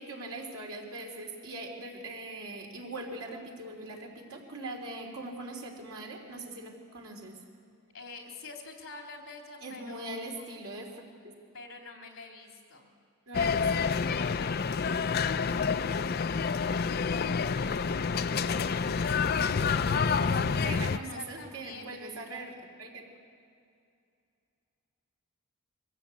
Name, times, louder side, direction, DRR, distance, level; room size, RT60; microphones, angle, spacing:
voice 1, 0.0-7.4 9.6-11.3 13.3-13.8 20.6-23.1, right 2 dB, 90° right, 0 dB, 3.7 m, -41 dB
voice 2, 7.9-10.6 11.5-12.9 14.2-14.6 18.7-22.0, left 3 dB, 70° left, 1 dB, 3.3 m, -46 dB
sound 1, 13.3-21.0, left 5 dB, 45° left, 0.4 m, -28 dB
23.0 x 16.0 x 8.5 m, 2.5 s
head